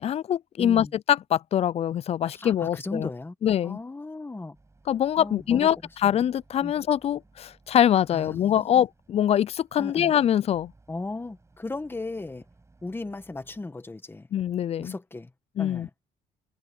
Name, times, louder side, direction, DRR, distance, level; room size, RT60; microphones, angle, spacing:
voice 1, 0.0-3.1 3.4-3.8 4.9-5.8 6.0-10.7 14.3-14.9 15.6-15.9, left 10 dB, 40° left, 0.4 m, -24 dB
voice 2, 0.6-0.9 2.3-3.3 3.6-4.6 5.2-5.7 6.0-6.2 6.6-6.7 8.1-8.7 9.8-10.1 10.9-12.4 12.8-14.3 14.8-15.3 15.6-15.9, left 2 dB, 15° left, 1.5 m, -36 dB
Boat Water vehicle, 4.5-13.6, right 3 dB, 15° right, 6.9 m, -60 dB
cardioid pair, 110°, 17 cm